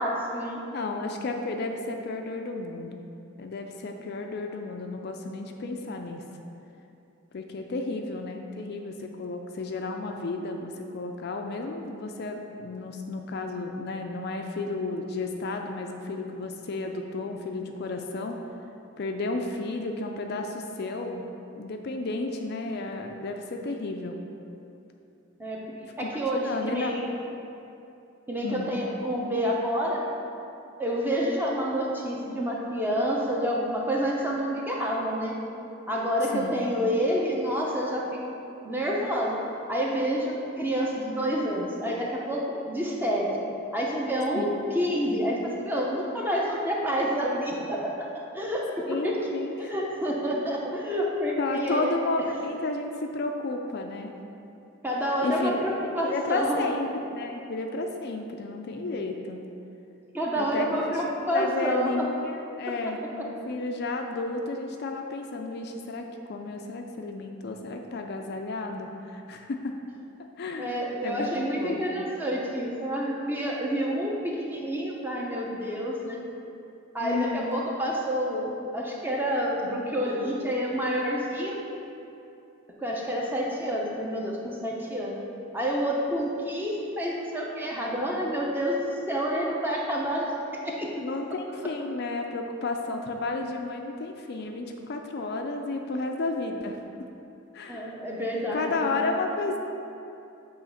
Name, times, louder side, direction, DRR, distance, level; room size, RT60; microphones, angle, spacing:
voice 1, 0.0-0.6 25.4-25.7 26.0-27.1 28.3-30.0 30.8-35.4 35.9-38.2 38.6-39.4 39.7-43.3 43.7-49.2 49.6-51.9 54.8-56.6 60.1-61.9 62.8-62.9 70.6-76.2 76.9-81.6 82.8-85.2 85.5-91.0 97.7-99.1, equal, 10° right, -3 dB, 0.7 m, -28 dB
voice 2, 0.7-3.0 3.4-6.2 7.3-18.4 19.0-24.2 26.0-26.9 28.4-28.7 36.3-36.5 44.4-44.6 48.9-49.7 51.4-54.1 55.2-55.6 56.0-59.4 60.4-60.9 61.3-69.7 70.4-71.3 71.6-72.0 77.0-77.6 91.0-96.8 97.5-98.0 98.5-99.6, left 3 dB, 50° left, 4 dB, 0.4 m, -32 dB
8.2 x 3.1 x 5.7 m, 2.8 s
head